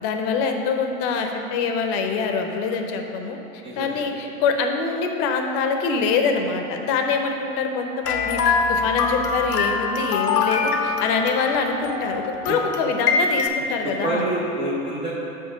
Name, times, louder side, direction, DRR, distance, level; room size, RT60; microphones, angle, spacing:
voice 1, 0.0-14.2, left 5 dB, 35° left, 4 dB, 0.6 m, -24 dB
voice 2, 3.6-4.0 12.5-12.6 13.8-15.1, right 1 dB, 15° right, -6 dB, 0.3 m, -27 dB
sound 1, 8.0-13.5, left 4 dB, 80° left, 0.8 m, -24 dB
5.5 x 4.5 x 6.0 m, 2.9 s
hypercardioid pair, 100°, 46 cm